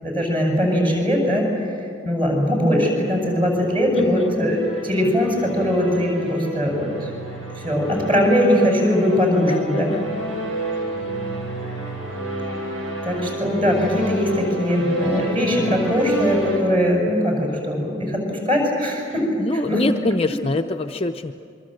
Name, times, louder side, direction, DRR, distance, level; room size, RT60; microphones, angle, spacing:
voice 1, 0.0-1.7 2.0-7.1 7.6-9.9 13.0-19.4 19.7-19.8, equal, 25° right, 0 dB, 7.0 m, -20 dB
sound 1, 2.8-16.6, right 1 dB, 85° right, 7.8 m, -31 dB
voice 2, 4.0-4.4 9.4-10.1 19.4-21.3, left 2 dB, 30° left, 4 dB, 0.6 m, -24 dB
27.0 x 23.5 x 7.8 m, 2.4 s
head